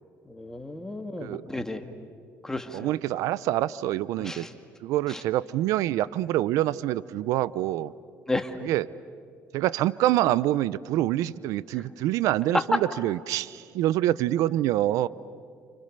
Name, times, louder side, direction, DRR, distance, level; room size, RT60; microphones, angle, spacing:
voice 1, 0.3-1.9 2.4-2.9 4.2-4.5 5.1-5.2 8.3-8.6, left 2 dB, 10° left, 6 dB, 2.4 m, -33 dB
voice 2, 2.7-4.5 4.8-7.9 8.6-8.9 9.5-15.1, right 14 dB, 80° right, 19 dB, 0.7 m, -26 dB
30.0 x 29.5 x 6.8 m, 2.2 s
supercardioid pair, 85°, 6 cm